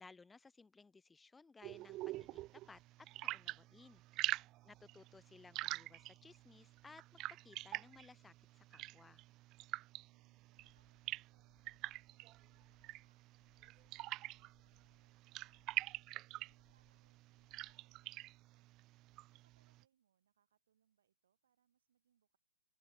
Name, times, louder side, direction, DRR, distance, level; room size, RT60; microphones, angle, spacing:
voice 1, 0.0-2.8 3.2-4.3 4.6-9.2, left 4 dB, 10° left, 0.7 m, -61 dB
sound 1, 1.6-19.8, right 18 dB, 25° right, 0.3 m, -46 dB
voice 2, 10.1-16.0 16.3-18.9 19.3-22.4, right 9 dB, 55° right, 8.0 m, -82 dB
sound 2, 10.5-17.7, left 17 dB, 25° left, 5.5 m, -78 dB
open air
figure-of-eight pair, 120°, 0 cm